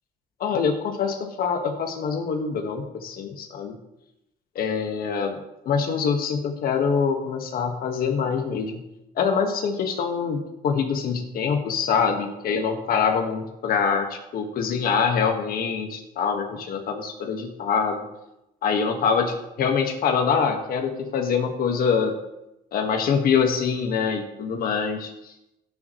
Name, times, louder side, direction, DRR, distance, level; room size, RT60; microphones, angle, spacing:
voice 1, 0.4-3.7 4.5-5.4 5.6-8.8 9.2-18.0 18.6-22.1 22.7-25.1, left 6 dB, 60° left, 3 dB, 1.6 m, -24 dB
16.5 x 7.3 x 3.1 m, 0.90 s
cardioid pair, 110°, 17 cm